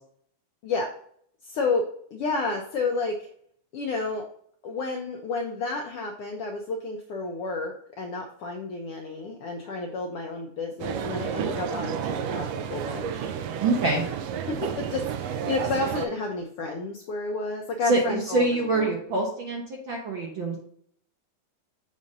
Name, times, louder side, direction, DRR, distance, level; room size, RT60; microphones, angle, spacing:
voice 1, 1.4-3.3 3.7-4.2 4.6-13.3 14.5-18.9, left 3 dB, 80° left, 2 dB, 1.3 m, -31 dB
sound 1, 10.8-16.1, right 7 dB, 80° right, 1.5 m, -31 dB
voice 2, 13.6-14.0 17.8-20.6, right 2 dB, 60° right, -1 dB, 1.3 m, -25 dB
7.3 x 2.6 x 5.3 m, 0.62 s
omnidirectional pair, 3.3 m